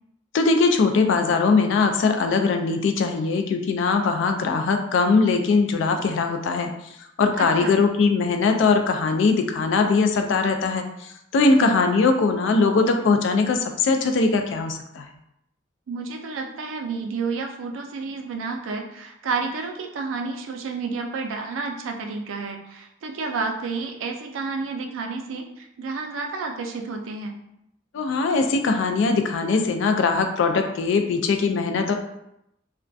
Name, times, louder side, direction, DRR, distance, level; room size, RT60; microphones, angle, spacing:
voice 1, 0.3-6.7 7.2-15.1 27.9-31.9, left 4 dB, 65° left, 5 dB, 0.3 m, -21 dB
voice 2, 7.3-7.7 11.4-11.7 15.9-27.3, right 4 dB, 75° right, 3 dB, 0.4 m, -30 dB
2.3 x 2.1 x 2.5 m, 0.81 s
head